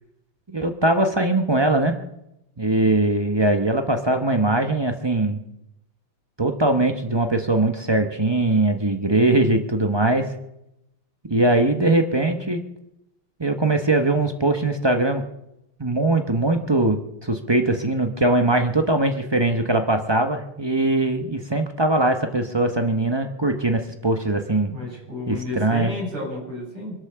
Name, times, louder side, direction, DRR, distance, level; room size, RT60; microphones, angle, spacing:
voice 1, 0.5-2.0 2.6-5.4 6.4-10.3 11.3-12.6 13.4-15.2 15.8-24.7 25.3-25.9, right 2 dB, 35° right, 6 dB, 0.4 m, -21 dB
voice 2, 24.7-26.9, left 1 dB, 80° right, -4 dB, 8.9 m, -31 dB
24.0 x 8.6 x 6.9 m, 0.86 s
omnidirectional pair, 2.4 m